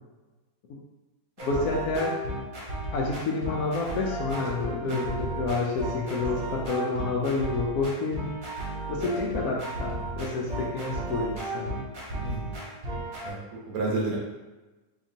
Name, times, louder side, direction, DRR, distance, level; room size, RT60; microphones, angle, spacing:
voice 1, 1.4-2.1 2.9-8.4 8.9-11.7, left 3 dB, 80° left, -3 dB, 1.1 m, -29 dB
sound 1, 1.4-13.3, right 1 dB, 40° right, 0.9 m, -34 dB
voice 2, 12.2-12.6 13.2-14.2, right 2 dB, 75° right, -2 dB, 1.3 m, -31 dB
4.2 x 2.9 x 2.7 m, 1.1 s
omnidirectional pair, 1.5 m